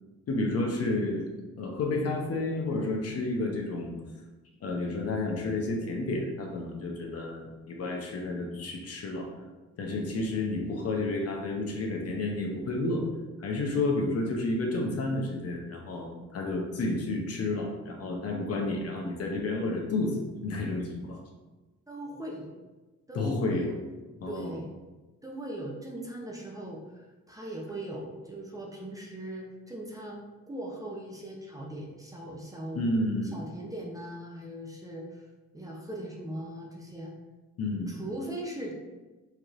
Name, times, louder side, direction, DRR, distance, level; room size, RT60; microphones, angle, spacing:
voice 1, 0.3-1.3 1.6-3.9 4.6-9.3 9.8-13.0 13.4-20.2 20.4-21.2 23.1-23.7 24.2-24.6 32.8-33.4 37.6-38.0, left 2 dB, 55° left, 1 dB, 0.8 m, -31 dB
voice 2, 21.9-22.5 23.1-23.8 24.3-24.7 25.2-32.8 33.3-35.2 35.5-37.1 37.9-38.7, right 1 dB, 10° right, -2 dB, 0.7 m, -39 dB
4.5 x 3.0 x 2.5 m, 1.2 s
cardioid pair, 90°, 30 cm